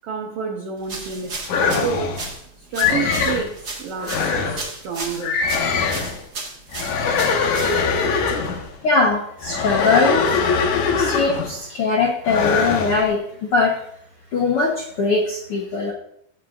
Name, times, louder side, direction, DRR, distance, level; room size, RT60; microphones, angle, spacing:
voice 1, 0.0-1.4 1.7-2.2 2.6-5.4, right 5 dB, 75° right, 1 dB, 1.3 m, -29 dB
sound 1, 0.8-8.1, right 3 dB, 45° right, 1.4 m, -35 dB
sound 2, 1.5-2.3 2.8-3.5 4.0-4.7 5.2-6.2 6.7-8.7 9.4-11.6 12.2-13.0, left 5 dB, 60° left, 2.3 m, -22 dB
voice 2, 8.8-13.8 14.3-15.9, left 4 dB, 80° left, -1 dB, 1.2 m, -21 dB
15.5 x 7.7 x 2.5 m, 0.72 s
omnidirectional pair, 4.4 m